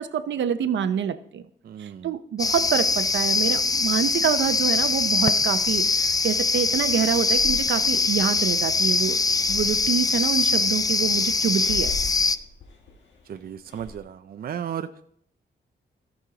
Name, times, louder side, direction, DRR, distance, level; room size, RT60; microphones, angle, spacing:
voice 1, 0.0-1.4 1.8-9.2 9.5-11.9, right 8 dB, 90° right, 11 dB, 0.7 m, -26 dB
voice 2, 1.6-2.1 13.3-15.0, right 9 dB, 55° right, 9 dB, 0.5 m, -35 dB
sound 1, 2.4-12.4, left 3 dB, 20° left, 0.4 m, -23 dB
Breathing, 5.5-14.0, left 3 dB, 85° left, 1.5 m, -42 dB
15.0 x 6.2 x 3.9 m, 0.67 s
wide cardioid pair, 120°, 18 cm